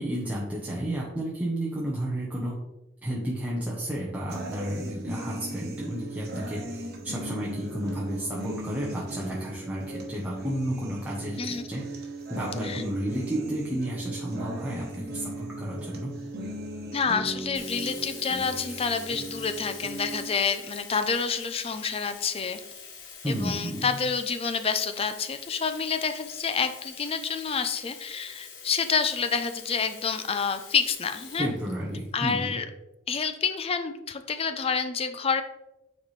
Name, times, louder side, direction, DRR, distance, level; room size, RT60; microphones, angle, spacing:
voice 1, 0.0-2.6 3.0-11.8 12.3-16.1 23.2-24.0 31.4-32.6, right 1 dB, 10° right, -5 dB, 0.9 m, -32 dB
sound 1, 4.3-20.3, right 1 dB, 50° right, 1.2 m, -38 dB
voice 2, 16.9-22.6 23.3-31.5 32.1-32.6 33.1-35.4, left 5 dB, 30° left, 9 dB, 0.5 m, -28 dB
Sink (filling or washing), 17.5-32.3, left 6 dB, 70° left, 1.2 m, -44 dB
9.3 x 4.1 x 3.2 m, 0.99 s
head